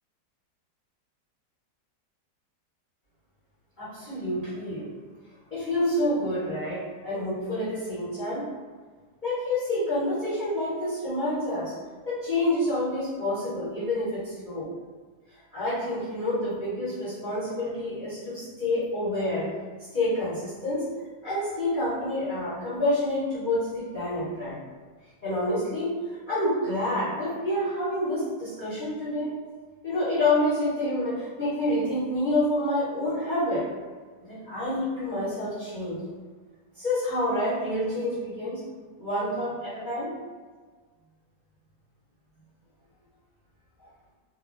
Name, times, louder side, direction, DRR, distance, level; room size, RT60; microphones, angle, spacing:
voice 1, 3.8-4.9 5.5-8.5 9.2-11.7 12.0-14.7 15.5-19.5 19.9-20.8 21.2-24.6 25.2-25.9 26.3-29.3 29.8-33.7 34.2-36.0 36.7-38.6 39.0-40.1, left 1 dB, 30° left, -14 dB, 1.1 m, -28 dB
2.8 x 2.6 x 2.6 m, 1.5 s
omnidirectional pair, 1.9 m